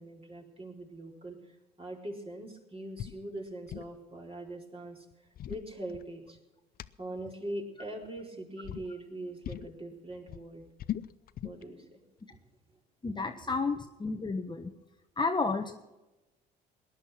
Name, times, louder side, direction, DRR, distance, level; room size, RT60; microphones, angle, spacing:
voice 1, 0.0-1.4 1.8-5.1 5.5-6.4 7.0-10.6 11.4-12.0 12.3-12.4 13.0-13.1 13.5-13.6, right 1 dB, 25° right, 1 dB, 4.4 m, -42 dB
sound 1, 3.0-3.2 3.5-4.0 5.1-6.4 6.8-6.9 8.0-8.3 8.6-8.9 9.4-9.8 10.1-11.6, left 11 dB, 45° left, 0.7 m, -39 dB
voice 2, 13.0-14.7 15.2-15.7, left 4 dB, 20° left, 6 dB, 1.3 m, -31 dB
18.5 x 11.0 x 6.0 m, 1.0 s
hypercardioid pair, 65°, 21 cm